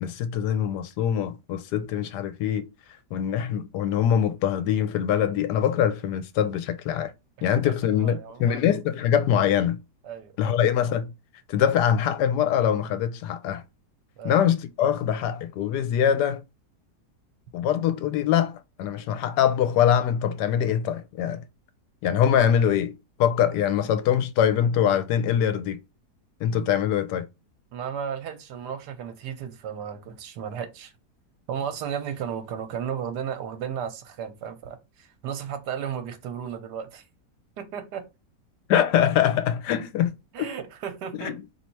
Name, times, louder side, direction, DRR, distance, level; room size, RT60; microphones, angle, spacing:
voice 1, 0.0-2.6 3.1-7.1 7.4-9.8 10.4-11.1 11.5-13.6 14.2-16.4 17.5-21.4 22.0-22.9 23.2-25.8 26.4-27.3 38.7-40.5 41.2-41.4, left 9 dB, 75° left, 1.1 m, -23 dB
voice 2, 7.4-8.7 10.0-10.6 14.2-14.4 27.7-30.9 31.5-37.0 37.6-38.1 40.3-41.4, right 8 dB, 75° right, 1.3 m, -34 dB
3.0 x 2.9 x 4.4 m
omnidirectional pair, 1.8 m